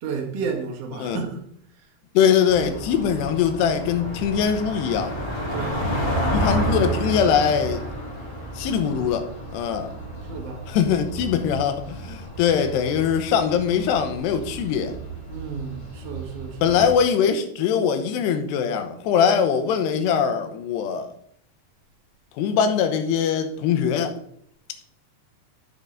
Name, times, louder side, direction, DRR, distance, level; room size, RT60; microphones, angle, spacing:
voice 1, 0.0-1.4 1.8-1.9 5.5-6.3 10.3-10.7 15.3-16.8, right 5 dB, 90° right, 1.3 m, -32 dB
voice 2, 2.1-5.1 6.3-7.9 8.5-9.3 9.5-9.9 10.7-15.0 16.6-21.1 22.3-24.1, left 7 dB, 80° left, 2.8 m, -22 dB
sound 1, 2.5-16.9, right 1 dB, 45° left, 0.3 m, -31 dB
11.0 x 6.8 x 3.8 m
omnidirectional pair, 5.2 m